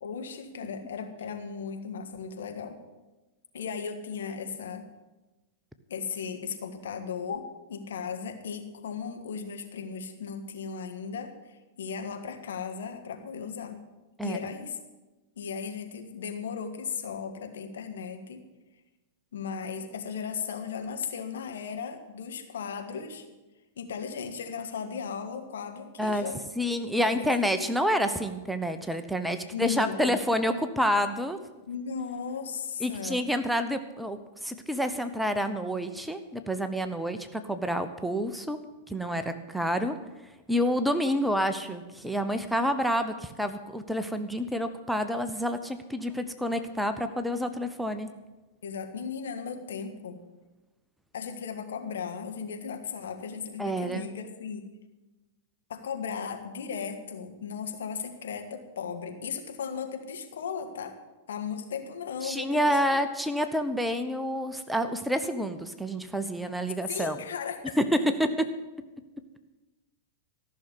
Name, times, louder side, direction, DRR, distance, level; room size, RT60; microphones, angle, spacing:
voice 1, 0.0-2.8 3.5-4.9 5.9-13.8 14.2-14.8 15.4-18.4 19.3-23.3 23.8-26.4 27.1-27.3 29.5-30.2 30.5-30.6 31.7-33.2 48.6-50.2 51.1-54.7 55.7-60.9 61.3-63.0 66.9-67.8, left 6 dB, 70° left, 5 dB, 1.6 m, -36 dB
voice 2, 26.6-31.4 32.8-38.6 38.9-40.0 40.5-48.1 53.6-54.1 62.2-67.2 67.8-68.5, equal, ahead, 8 dB, 0.9 m, -28 dB
14.0 x 6.5 x 9.7 m, 1.1 s
figure-of-eight pair, 100°, 0 cm